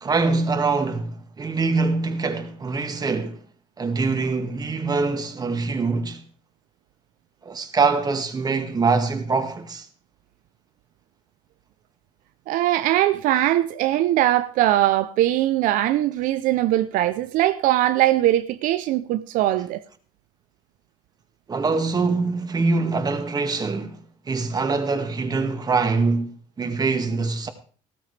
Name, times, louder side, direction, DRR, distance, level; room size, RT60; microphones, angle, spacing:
voice 1, 0.0-3.4 3.8-6.2 7.4-9.9 21.5-24.0 24.3-27.5, right 4 dB, 30° right, 1.9 m, -24 dB
voice 2, 12.5-19.8, right 14 dB, 75° right, 0.6 m, -21 dB
15.5 x 14.0 x 3.3 m
cardioid pair, 105°, 14 cm